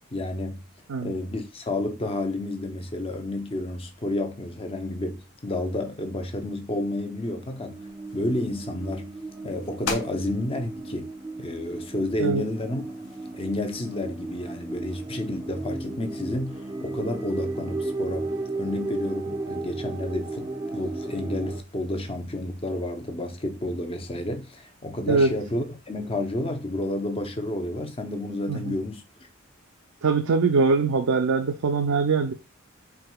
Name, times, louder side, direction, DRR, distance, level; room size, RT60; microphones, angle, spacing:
voice 1, 0.1-0.7 1.0-7.8 8.1-9.1 9.4-11.1 11.4-12.8 13.3-29.0, left 1 dB, 25° left, 0.6 m, -30 dB
sound 1, 7.3-21.6, right 2 dB, 20° right, 0.5 m, -35 dB
sound 2, 7.7-14.0, left 4 dB, 85° left, 1.1 m, -42 dB
voice 2, 30.0-32.3, right 4 dB, 75° right, 0.5 m, -22 dB
4.6 x 3.6 x 2.3 m
head